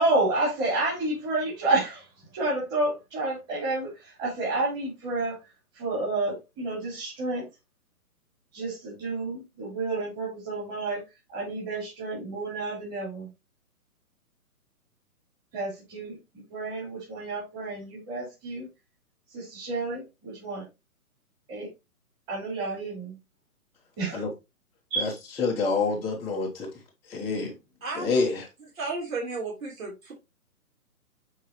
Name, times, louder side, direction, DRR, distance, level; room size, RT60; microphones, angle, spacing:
voice 1, 0.0-2.0 2.3-5.4 5.7-7.5 8.5-11.0 11.3-13.3 15.5-18.7 19.3-20.6 21.5-21.7 22.3-23.2 24.0-24.2 24.9-25.1, right 2 dB, 25° right, 4.4 m, -30 dB
voice 2, 25.4-26.7 27.1-27.5 27.9-28.5, left 4 dB, 5° left, 0.9 m, -27 dB
voice 3, 28.8-30.1, right 3 dB, 60° right, 3.7 m, -33 dB
8.1 x 4.7 x 3.0 m
figure-of-eight pair, 135°, 45 cm